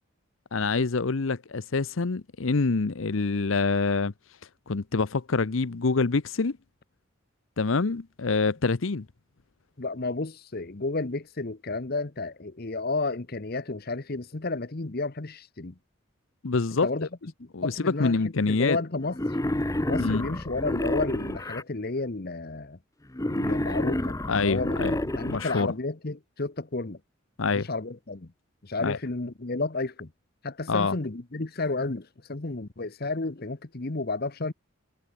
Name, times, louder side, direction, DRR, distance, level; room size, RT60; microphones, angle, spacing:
voice 1, 0.5-4.1 4.7-6.6 7.6-9.1 16.4-16.9 17.5-18.8 20.0-20.2 24.3-25.0 25.3-25.7 27.4-27.7 28.8-29.0 30.7-31.0, left 4 dB, 70° left, 0.8 m, -26 dB
voice 2, 9.8-15.8 16.8-17.1 17.4-19.2 19.9-22.8 23.3-24.8 25.1-27.0 27.5-28.3 28.6-30.1 30.4-34.5, left 3 dB, 50° left, 1.1 m, -32 dB
Wild animals, 19.1-21.6 23.1-25.6, left 1 dB, 15° left, 0.8 m, -29 dB
head